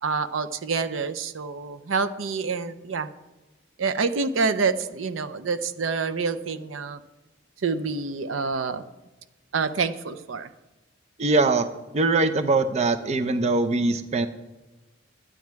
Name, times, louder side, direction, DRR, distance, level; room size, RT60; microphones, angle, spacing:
voice 1, 0.0-3.1 3.8-7.0 7.6-8.8 9.5-10.5, right 4 dB, 80° right, 11 dB, 0.6 m, -27 dB
voice 2, 11.2-11.7 11.9-14.3, right 3 dB, 35° right, 9 dB, 0.5 m, -22 dB
12.0 x 9.4 x 4.6 m, 1.1 s
head